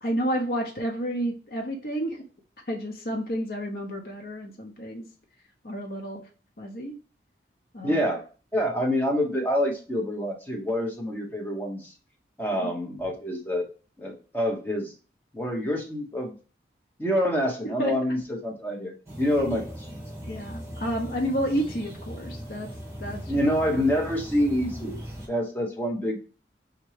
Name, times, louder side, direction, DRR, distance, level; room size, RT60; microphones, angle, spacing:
voice 1, 0.0-2.2 2.7-5.1 5.6-6.2 6.6-6.9 7.7-8.0 12.5-12.7 17.6-17.9 20.3-22.7 23.0-23.4, right 1 dB, 55° left, 1 dB, 0.7 m, -30 dB
voice 2, 7.8-8.3 8.5-11.9 12.4-13.7 14.0-14.9 15.3-16.4 17.0-19.9 23.3-25.0 25.3-26.2, equal, 10° left, 0 dB, 0.9 m, -27 dB
sound 1, 19.1-25.3, equal, 15° right, 1.2 m, -39 dB
4.4 x 3.6 x 3.2 m, 0.36 s
head